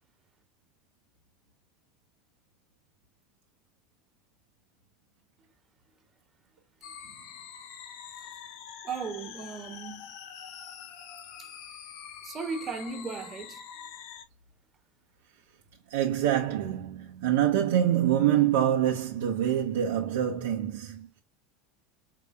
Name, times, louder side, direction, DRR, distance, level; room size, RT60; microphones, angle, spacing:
sound 1, 6.8-14.2, left 8 dB, 65° left, 1.0 m, -45 dB
voice 1, 8.8-10.1 11.4-11.5 12.2-13.7, right 5 dB, 30° right, 1.5 m, -36 dB
voice 2, 15.9-21.2, right 11 dB, 85° right, 0.9 m, -26 dB
4.8 x 3.9 x 2.3 m
supercardioid pair, 110°, 0 cm